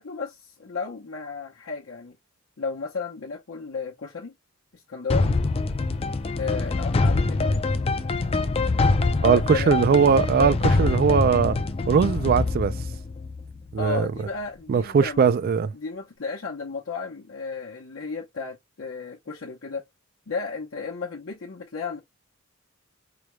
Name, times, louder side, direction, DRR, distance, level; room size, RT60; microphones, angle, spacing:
voice 1, 0.0-2.2 2.6-4.3 4.7-5.4 6.4-7.6 9.3-9.9 13.8-15.3 15.7-19.8 20.3-22.0, left 4 dB, 75° left, 0.8 m, -33 dB
sound 1, 5.1-13.9, left 3 dB, 30° left, 0.4 m, -24 dB
voice 2, 9.2-11.6 11.9-12.7 13.7-14.1 14.7-15.7, right 6 dB, 45° right, 0.3 m, -20 dB
4.8 x 2.2 x 3.0 m
head